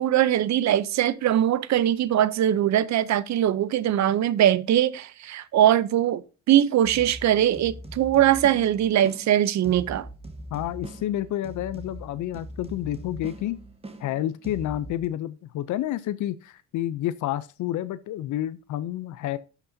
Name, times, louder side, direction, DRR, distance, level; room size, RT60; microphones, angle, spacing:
voice 1, 0.0-10.1, right 11 dB, 65° right, 0.7 m, -21 dB
sound 1, 6.8-15.1, right 1 dB, 20° right, 1.4 m, -42 dB
voice 2, 10.5-13.6 14.0-19.4, left 13 dB, 75° left, 0.6 m, -29 dB
12.5 x 6.0 x 2.7 m
cardioid pair, 90°, 30 cm